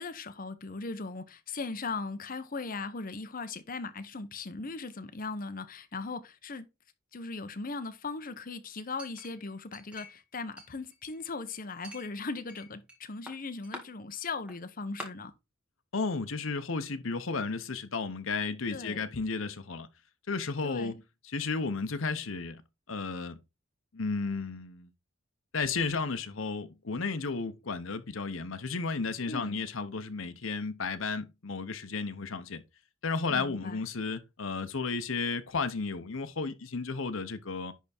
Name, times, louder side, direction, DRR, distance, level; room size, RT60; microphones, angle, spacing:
voice 1, 0.0-6.7 7.1-15.3 18.7-19.1 20.6-21.0 29.3-29.6 33.3-33.8, left 3 dB, 45° left, 0.8 m, -38 dB
Chink clink, 9.0-10.3 10.6-11.4 11.8-13.0 13.3-13.8 14.5-14.6 15.0-15.1, equal, 5° right, 1.6 m, -46 dB
voice 2, 15.9-19.9 20.3-20.9 21.2-22.6 22.9-23.4 23.9-24.9 25.5-32.6 33.0-37.7, left 4 dB, 70° left, 0.9 m, -33 dB
10.5 x 3.5 x 4.2 m
head